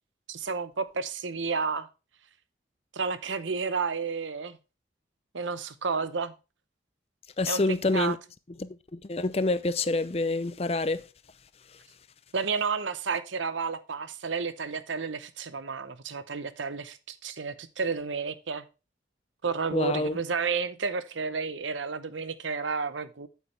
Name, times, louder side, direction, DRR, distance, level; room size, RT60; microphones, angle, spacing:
voice 1, 0.3-1.9 2.9-4.6 5.3-6.3 7.5-7.6 7.9-8.2 12.3-18.6 19.4-23.3, right 5 dB, 85° right, 0.8 m, -31 dB
voice 2, 7.4-8.2 8.6-11.0 19.7-20.2, left 2 dB, 30° left, 0.5 m, -27 dB
8.4 x 8.4 x 3.3 m
head